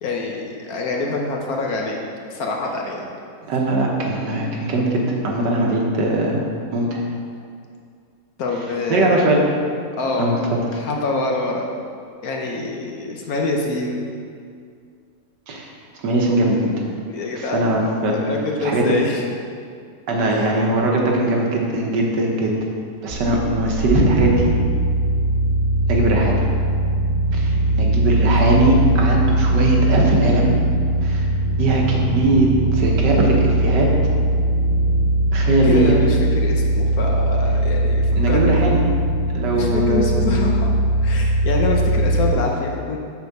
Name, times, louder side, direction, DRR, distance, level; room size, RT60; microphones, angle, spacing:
voice 1, 0.0-2.0 2.3-3.1 8.4-9.3 10.0-10.4 10.7-11.7 12.2-14.1 17.1-19.2 20.3-20.4 27.5-28.1 35.5-38.6 39.5-40.7 41.0-43.0, left 3 dB, 60° left, 0 dB, 1.2 m, -25 dB
voice 2, 3.5-6.4 6.7-7.0 8.9-9.4 10.2-10.4 15.5-15.7 16.0-16.7 17.3-18.2 18.6-18.8 20.1-22.5 23.0-24.5 25.9-26.4 27.3-30.5 31.0-31.3 31.6-34.0 35.3-36.0 38.2-38.8 39.3-40.3, right 2 dB, 75° right, -1 dB, 1.7 m, -20 dB
sound 1, 23.1-42.3, right 1 dB, 55° right, 1.6 m, -20 dB
7.2 x 4.3 x 6.6 m, 2.3 s
omnidirectional pair, 1.9 m